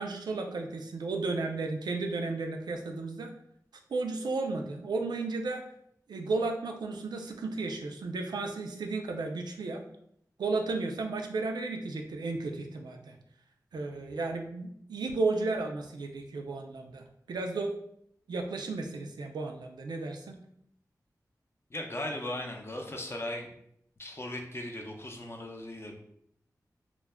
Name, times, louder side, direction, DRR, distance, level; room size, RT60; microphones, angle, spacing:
voice 1, 0.0-3.3 3.9-5.7 6.1-9.8 10.4-13.2 13.7-17.7 18.3-20.4, right 3 dB, 85° right, 3 dB, 0.3 m, -33 dB
voice 2, 21.7-23.5 24.0-25.9, left 1 dB, 35° left, 2 dB, 0.6 m, -37 dB
2.2 x 2.1 x 3.4 m, 0.72 s
cardioid pair, 40°, 7 cm